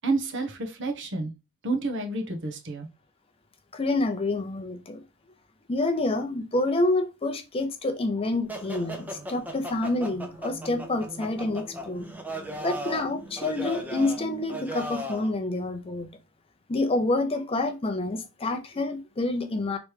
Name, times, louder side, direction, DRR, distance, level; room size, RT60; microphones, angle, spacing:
voice 1, 0.0-1.3 1.6-2.9, right 3 dB, 60° right, 0.9 m, -29 dB
voice 2, 3.7-5.0 5.7-12.1 12.6-16.1 16.7-19.8, left 2 dB, 25° left, 0.6 m, -28 dB
sound 1, 8.5-15.3, right 1 dB, 10° right, 0.7 m, -37 dB
3.2 x 3.0 x 4.7 m
head